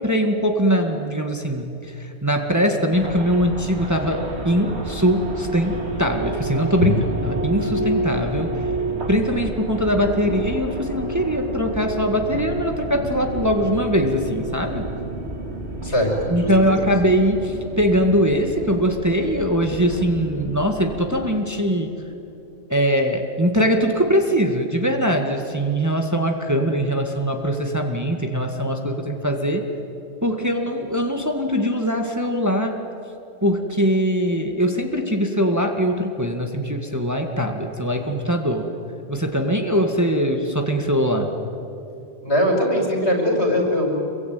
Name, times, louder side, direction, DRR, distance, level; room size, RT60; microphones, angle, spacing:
voice 1, 0.0-8.7 9.1-14.9 16.3-21.9 22.7-29.6 30.2-32.8 33.4-38.7 39.1-41.3, equal, 15° right, 3 dB, 1.9 m, -22 dB
sound 1, 2.9-21.2, right 1 dB, 60° right, 2.8 m, -30 dB
voice 2, 15.8-16.7 42.2-44.0, equal, 60° left, 1 dB, 6.0 m, -21 dB
27.0 x 23.5 x 9.4 m, 2.9 s
omnidirectional pair, 1.2 m